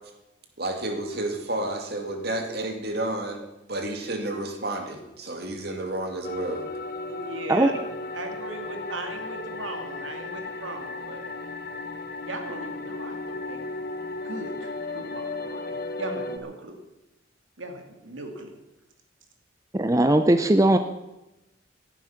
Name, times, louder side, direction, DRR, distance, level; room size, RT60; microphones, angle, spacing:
voice 1, 0.6-3.4 3.7-6.7, right 1 dB, 50° right, 4 dB, 2.4 m, -30 dB
sound 1, 6.2-16.4, left 2 dB, 50° left, 1.2 m, -35 dB
voice 2, 7.1-7.7 8.1-11.3 12.2-13.7 14.2-16.8 17.6-18.6, right 2 dB, 80° right, 4 dB, 2.6 m, -38 dB
voice 3, 19.7-20.8, right 1 dB, 15° right, 9 dB, 0.5 m, -19 dB
17.5 x 11.0 x 5.8 m, 0.95 s
head